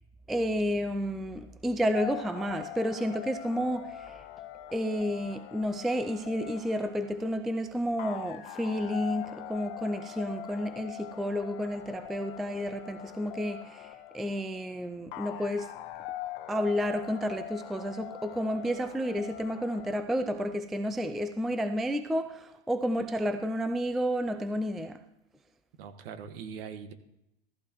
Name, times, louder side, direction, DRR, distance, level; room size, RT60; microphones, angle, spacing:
voice 1, 0.3-4.2 4.7-15.7 16.5-25.0, equal, ahead, 9 dB, 0.3 m, -31 dB
sound 1, 1.9-20.0, left 13 dB, 60° left, 1.0 m, -43 dB
voice 2, 25.8-26.9, right 7 dB, 65° right, 8 dB, 1.7 m, -41 dB
14.5 x 14.5 x 3.0 m, 0.85 s
hypercardioid pair, 125°, 31 cm